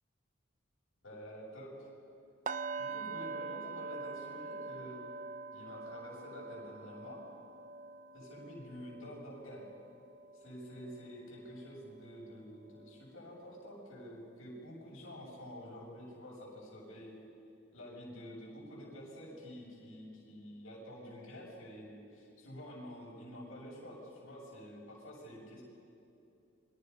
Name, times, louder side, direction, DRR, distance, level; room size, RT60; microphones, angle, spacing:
voice 1, 1.0-1.9 2.8-5.1 5.5-7.2 8.1-9.6 10.3-17.2 17.7-25.6, equal, 70° left, -6 dB, 7.3 m, -49 dB
sound 1, 2.5-12.4 12.7-13.0 13.4-13.6, right 4 dB, 35° right, 0.7 m, -45 dB
29.0 x 24.5 x 5.6 m, 2.7 s
head